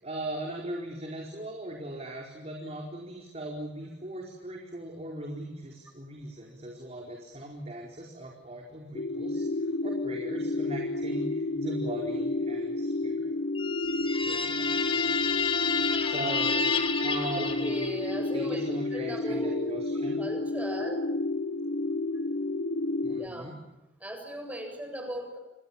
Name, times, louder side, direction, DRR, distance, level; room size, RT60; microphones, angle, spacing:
voice 1, 0.0-13.3 14.1-15.0 16.0-16.5 17.0-18.1 18.3-20.2 23.0-23.6, right 1 dB, 40° right, 0 dB, 4.7 m, -39 dB
sound 1, 8.9-23.3, left 2 dB, 55° left, 1.1 m, -31 dB
sound 2, 13.5-18.3, left 5 dB, 30° left, 2.3 m, -30 dB
voice 2, 17.4-18.6 18.9-19.5 20.2-21.0 23.2-23.5 24.0-25.4, right 1 dB, 10° right, 4 dB, 7.7 m, -38 dB
29.5 x 24.5 x 7.3 m, 0.92 s
head